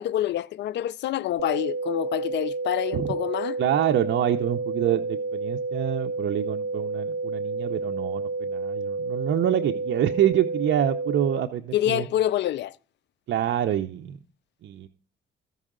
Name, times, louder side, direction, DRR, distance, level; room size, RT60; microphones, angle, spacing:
voice 1, 0.0-3.6 11.7-12.8, left 12 dB, 65° left, 0.4 m, -27 dB
sound 1, 1.4-11.4, right 3 dB, 45° right, 1.7 m, -30 dB
voice 2, 3.6-12.1 13.3-14.2 14.6-14.9, right 11 dB, 65° right, 0.6 m, -26 dB
14.5 x 5.4 x 3.7 m
cardioid pair, 90°, 20 cm